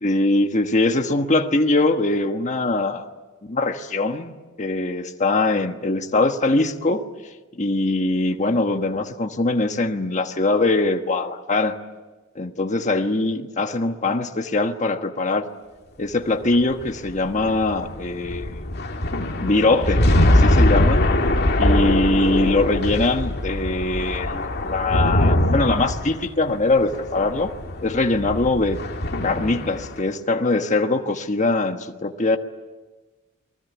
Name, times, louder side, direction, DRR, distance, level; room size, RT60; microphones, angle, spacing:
voice 1, 0.0-3.1 3.5-7.1 7.6-11.8 12.3-15.5 16.0-18.6 19.4-21.0 21.6-27.5 27.8-28.8 29.2-32.4, left 2 dB, 35° left, 5 dB, 1.3 m, -22 dB
sound 1, 16.4-30.0, left 1 dB, 50° left, 2.2 m, -22 dB
29.5 x 20.5 x 9.3 m, 1.2 s
head